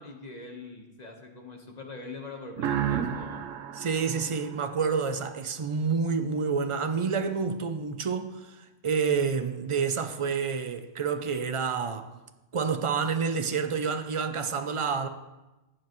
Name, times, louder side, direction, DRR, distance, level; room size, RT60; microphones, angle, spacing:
voice 1, 0.0-3.4, left 3 dB, 35° left, 1.2 m, -43 dB
sound 1, 2.6-5.2, right 9 dB, 85° right, 1.1 m, -32 dB
voice 2, 3.7-12.1 12.5-15.1, right 5 dB, 55° right, 0.3 m, -28 dB
16.5 x 7.5 x 3.1 m
omnidirectional pair, 1.3 m